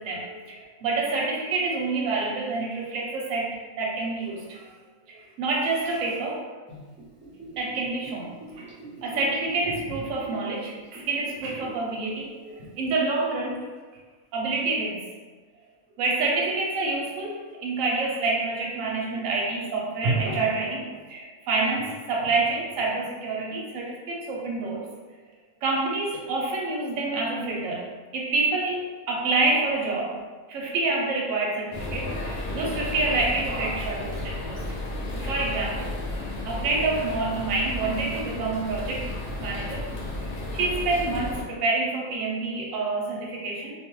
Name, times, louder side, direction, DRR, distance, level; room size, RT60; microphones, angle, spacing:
voice 1, 0.0-3.5 3.8-4.7 5.1-6.6 7.6-8.7 9.0-13.7 14.3-15.0 16.0-24.8 25.6-27.8 28.1-30.2 30.5-34.8 35.1-39.9 40.2-43.7, right 3 dB, 70° right, -2 dB, 1.0 m, -28 dB
Gurgling / Bathtub (filling or washing), 6.7-11.8 12.2-12.3, right 2 dB, 10° right, 0.6 m, -43 dB
sound 1, 31.7-41.4, left 2 dB, 70° left, 0.6 m, -33 dB
2.5 x 2.2 x 3.0 m, 1.3 s
omnidirectional pair, 1.5 m